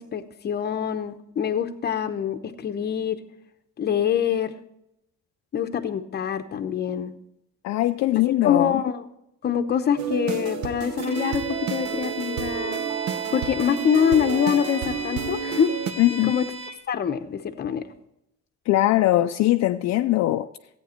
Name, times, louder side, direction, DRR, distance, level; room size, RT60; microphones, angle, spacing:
voice 1, 0.0-3.2 3.8-4.6 5.5-7.1 8.4-9.0 9.4-11.4 11.7-12.8 13.3-15.7 16.1-16.5 16.9-17.8, left 8 dB, 35° left, 0.8 m, -25 dB
voice 2, 7.6-8.8 16.0-16.4 18.7-20.5, left 15 dB, 60° left, 0.5 m, -21 dB
sound 1, 10.0-15.9, right 6 dB, 70° right, 0.9 m, -30 dB
Bowed string instrument, 11.0-16.8, right 3 dB, 20° right, 1.7 m, -36 dB
14.0 x 9.0 x 4.3 m
cardioid pair, 165°, 30 cm